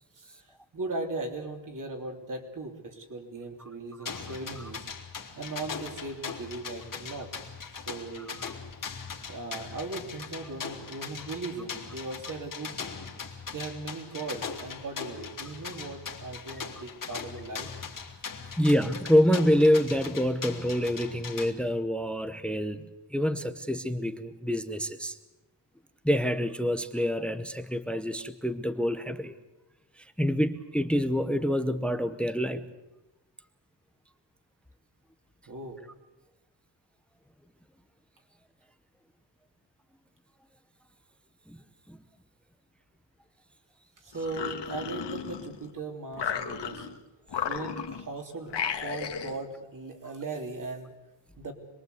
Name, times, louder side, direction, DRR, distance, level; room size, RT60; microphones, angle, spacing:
voice 1, 0.1-4.9 5.3-7.3 7.7-8.3 9.3-12.8 13.5-17.7 18.4-18.5 35.5-35.8 44.0-46.9 47.4-50.9 51.4-51.5, right 3 dB, 45° right, 4 dB, 3.3 m, -38 dB
sound 1, 4.1-21.5, left 6 dB, 45° left, 2.6 m, -40 dB
voice 2, 18.6-22.8 23.1-25.2 26.0-29.3 30.2-32.6 41.5-41.6 41.9-42.0, equal, ahead, 11 dB, 0.8 m, -26 dB
sound 2, 44.1-45.7 46.1-47.0 47.3-48.1 48.5-49.4, left 7 dB, 65° left, 1.9 m, -34 dB
26.0 x 22.0 x 8.2 m, 1.0 s
wide cardioid pair, 180°, 44 cm